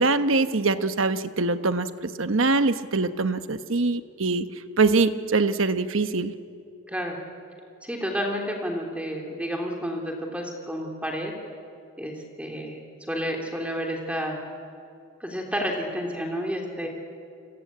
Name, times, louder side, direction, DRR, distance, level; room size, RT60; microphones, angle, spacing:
voice 1, 0.0-4.5 4.8-6.3, right 3 dB, 80° right, 10 dB, 1.1 m, -23 dB
voice 2, 6.9-7.2 7.8-11.3 12.0-12.1 12.4-12.8 13.1-14.4 15.2-16.9, equal, 5° right, 1 dB, 3.1 m, -30 dB
29.0 x 23.0 x 8.6 m, 2.4 s
head